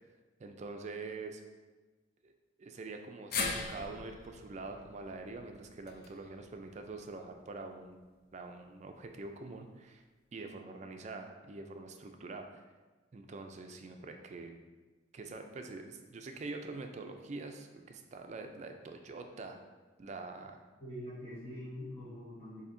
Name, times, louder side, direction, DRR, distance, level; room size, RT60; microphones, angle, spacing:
voice 1, 0.4-1.4 2.2-2.3 2.6-8.0 8.3-10.0 10.3-12.6 13.1-14.5 15.1-19.6 20.0-20.7, right 3 dB, 40° right, 5 dB, 0.4 m, -45 dB
sound 1, 3.3-7.6 7.9-8.0 9.2-9.3, left 4 dB, 55° left, 0.5 m, -41 dB
voice 2, 20.8-22.6, left 1 dB, 30° left, -11 dB, 1.0 m, -44 dB
6.9 x 2.7 x 2.6 m, 1.3 s
head